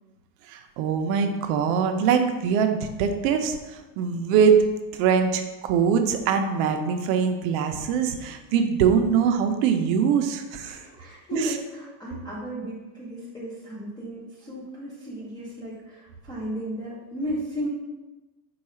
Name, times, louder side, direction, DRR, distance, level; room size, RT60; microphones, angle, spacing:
voice 1, 0.5-3.6 4.0-4.6 4.9-10.8 11.3-11.4, right 7 dB, 55° right, 6 dB, 0.5 m, -22 dB
voice 2, 10.6-17.7, right 1 dB, 10° left, -8 dB, 0.3 m, -34 dB
4.6 x 2.3 x 4.2 m, 1.1 s
supercardioid pair, 150°, 50 cm